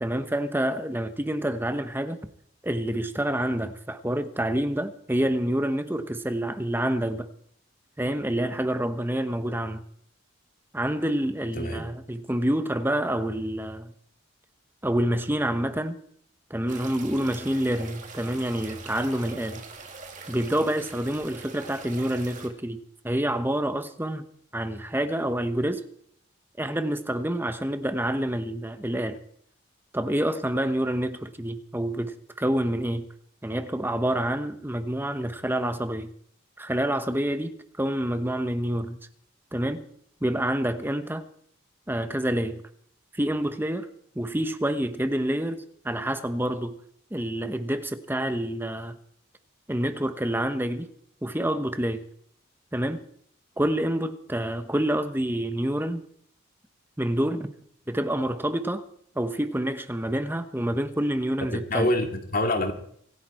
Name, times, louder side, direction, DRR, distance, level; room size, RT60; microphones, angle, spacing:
voice 1, 0.0-2.2 2.6-7.3 8.0-9.8 10.7-13.9 14.8-16.0 16.5-19.6 20.3-22.8 23.0-24.2 24.5-25.8 26.6-29.2 29.9-33.1 33.4-36.1 36.6-39.0 39.5-39.8 40.2-41.2 41.9-42.6 43.1-43.9 44.1-46.7 47.1-49.0 49.7-50.9 51.2-52.0 52.7-53.0 53.6-56.0 57.0-57.5 57.9-58.8 59.1-61.9, right 1 dB, 10° right, 1.0 m, -27 dB
voice 2, 11.5-11.9 61.5-62.7, left 1 dB, 40° left, 2.2 m, -26 dB
sound 1, 16.7-22.5, right 4 dB, 35° right, 2.6 m, -43 dB
25.5 x 11.0 x 4.4 m
head